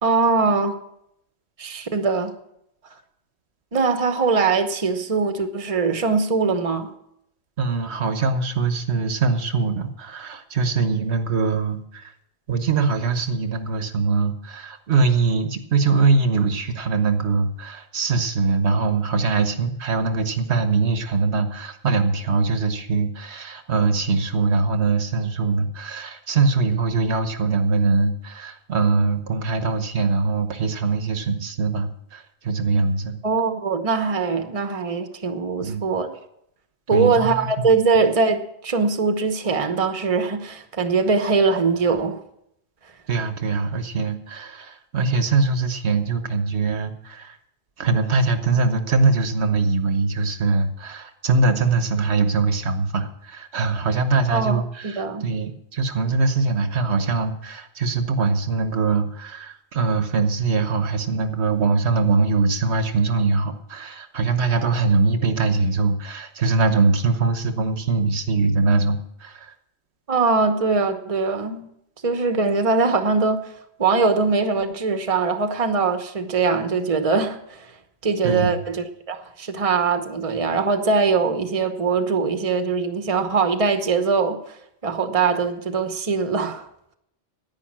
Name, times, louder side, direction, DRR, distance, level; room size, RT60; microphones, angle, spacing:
voice 1, 0.0-0.8 1.6-2.3 3.7-6.9 33.2-36.2 36.9-42.2 54.3-55.2 70.1-71.7 72.0-73.5 73.8-77.7 78.0-84.4 84.8-86.7, right 4 dB, 35° right, 1.0 m, -22 dB
voice 2, 7.6-12.1 12.5-33.2 35.6-35.8 36.9-37.7 43.1-47.4 47.8-69.5 78.2-78.5, right 4 dB, 80° right, 1.3 m, -22 dB
10.5 x 9.5 x 7.4 m
omnidirectional pair, 1.1 m